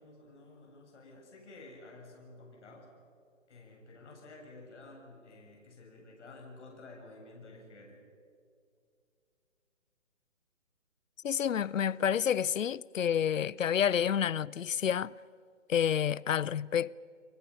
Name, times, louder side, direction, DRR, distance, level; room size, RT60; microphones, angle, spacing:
voice 1, 0.0-2.9 3.5-8.0, left 2 dB, 65° left, 7.6 m, -52 dB
voice 2, 11.2-15.1 15.7-16.9, left 9 dB, 85° left, 0.7 m, -29 dB
29.5 x 24.5 x 5.9 m
hypercardioid pair, 155°, 38 cm